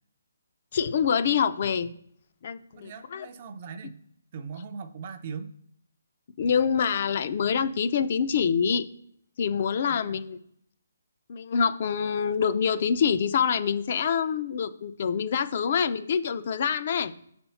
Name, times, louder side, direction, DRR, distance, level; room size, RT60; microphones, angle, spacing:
voice 1, 0.7-1.9 2.4-3.3 6.4-8.9 9.4-10.4 11.3-17.1, left 7 dB, 40° left, 12 dB, 0.4 m, -26 dB
voice 2, 2.7-4.0 4.3-5.5 9.9-10.2, right 5 dB, 30° right, 9 dB, 0.5 m, -40 dB
6.2 x 4.3 x 5.6 m, 0.71 s
hypercardioid pair, 170°, 0 cm